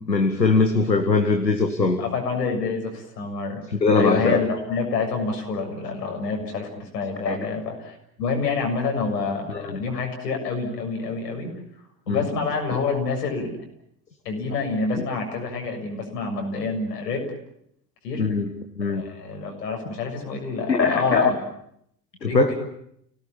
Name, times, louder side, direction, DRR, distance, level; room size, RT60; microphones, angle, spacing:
voice 1, 0.1-2.0 3.8-4.4 7.3-7.4 9.5-9.8 12.1-12.2 18.2-18.5 18.8-19.0 20.7-21.3 22.2-22.5, left 3 dB, 85° left, 6 dB, 1.7 m, -21 dB
voice 2, 2.0-3.6 4.0-11.5 12.1-13.5 14.3-17.2 18.0-18.2 18.8-21.3 22.2-22.5, left 4 dB, 70° left, 3 dB, 7.0 m, -27 dB
29.5 x 18.5 x 8.9 m, 0.74 s
figure-of-eight pair, 65°, 49 cm